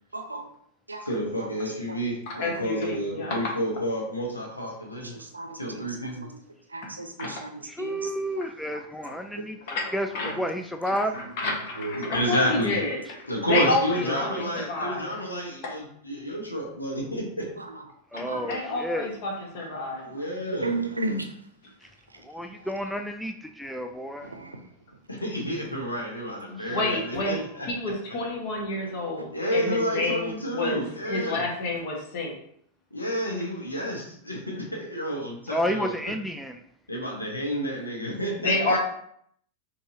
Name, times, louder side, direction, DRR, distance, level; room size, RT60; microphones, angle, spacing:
voice 1, 0.1-0.5 0.9-1.1 1.4-1.6 1.9-2.0 2.3-2.6 3.1-3.2 5.0-6.3 6.7-8.1 8.7-9.6 10.2-10.5 10.9-11.3 11.8-12.2 17.6-17.9 18.1-18.8 19.7-19.8 20.1-20.2 20.5-21.5 22.1-22.2 22.5-22.7 24.2-25.0, right 2 dB, 80° right, 5 dB, 0.6 m, -36 dB
voice 2, 1.1-5.2 5.6-6.3 7.2-7.3 12.1-12.8 13.3-17.5 20.0-20.7 25.1-27.7 29.3-31.4 32.9-36.0 36.9-38.8, equal, 80° left, -1 dB, 1.3 m, -30 dB
voice 3, 2.3-3.5 7.2-7.4 9.1-9.2 9.7-10.3 10.8-13.0 13.4-15.0 15.6-15.7 18.2-20.0 26.7-27.4 27.7-32.4 38.4-38.8, left 2 dB, 50° left, 0 dB, 1.5 m, -29 dB
voice 4, 7.7-9.5 9.9-11.2 13.6-13.8 14.1-14.7 18.1-19.1 22.2-24.3 35.5-36.6, equal, ahead, 5 dB, 0.3 m, -31 dB
5.4 x 3.4 x 2.8 m, 0.66 s
figure-of-eight pair, 90°, 0 cm